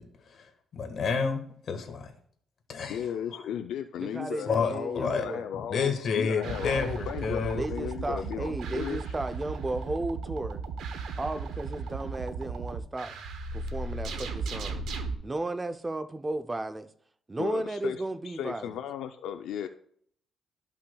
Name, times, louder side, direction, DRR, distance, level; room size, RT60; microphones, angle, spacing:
voice 1, 0.0-2.1 2.7-3.0 3.3-3.5 4.5-5.2 5.5-7.6, left 5 dB, 55° left, 1.4 m, -30 dB
voice 2, 2.9-9.0 17.4-19.7, left 9 dB, 80° left, 0.4 m, -35 dB
voice 3, 4.0-5.5 7.6-10.6 11.2-13.2 13.5-14.8 15.2-16.9 17.3-18.7, right 2 dB, 20° right, 0.5 m, -34 dB
sound 1, 6.4-15.1, right 4 dB, 75° right, 0.9 m, -36 dB
13.0 x 5.7 x 2.3 m
cardioid pair, 90°, 0 cm